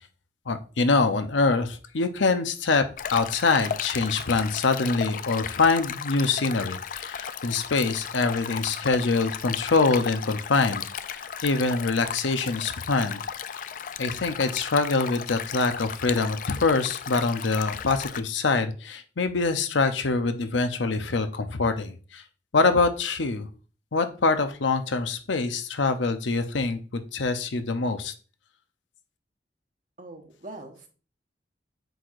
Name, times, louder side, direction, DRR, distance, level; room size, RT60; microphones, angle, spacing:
voice 1, 0.5-2.8 3.1-13.2 13.5-13.6 14.0-22.2 22.5-23.5 23.9-28.1, left 3 dB, 85° left, 8 dB, 0.7 m, -25 dB
Stream, 3.0-18.2, left 8 dB, 45° left, 0.3 m, -35 dB
voice 2, 30.0-30.9, right 2 dB, 45° right, 3 dB, 1.2 m, -42 dB
7.8 x 4.8 x 2.6 m, 0.37 s
head